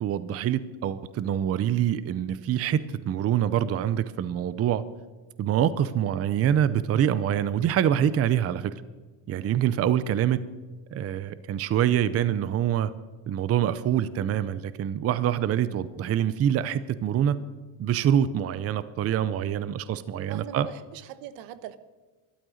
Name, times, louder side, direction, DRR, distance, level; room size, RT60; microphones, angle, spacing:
voice 1, 0.0-4.8 5.4-8.7 9.3-10.4 10.9-12.9 13.3-17.4 17.8-20.7, right 10 dB, 35° right, 15 dB, 0.6 m, -25 dB
voice 2, 15.3-15.8 20.3-21.8, right 11 dB, 80° right, 14 dB, 1.1 m, -41 dB
13.0 x 12.0 x 6.4 m, 1.3 s
cardioid pair, 145°, 44 cm